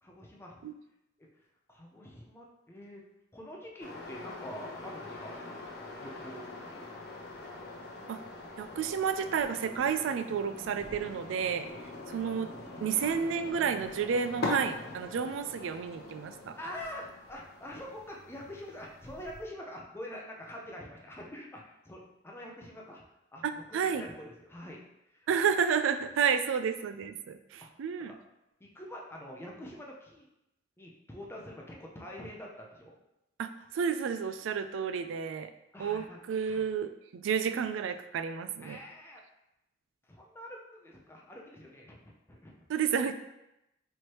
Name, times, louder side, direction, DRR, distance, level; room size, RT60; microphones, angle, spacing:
voice 1, 0.0-0.6 1.2-1.3 1.7-3.0 3.3-5.4 6.0-6.4 6.7-6.9 13.0-13.2 16.6-23.0 23.3-24.8 25.1-25.3 27.6-27.7 28.1-28.2 28.6-30.3 30.8-33.0 35.7-36.2 36.4-36.6 38.6-39.2 40.1-42.0 42.3-42.6, left 1 dB, 15° left, -1 dB, 0.5 m, -45 dB
sound 1, 3.8-19.4, left 2 dB, 60° left, 0.8 m, -43 dB
voice 2, 8.6-11.7 12.1-12.5 12.8-16.6 23.4-24.0 25.3-28.1 33.4-35.5 35.8-38.8 42.7-43.1, right 7 dB, 90° right, 10 dB, 0.3 m, -31 dB
4.5 x 3.1 x 2.9 m, 0.88 s
head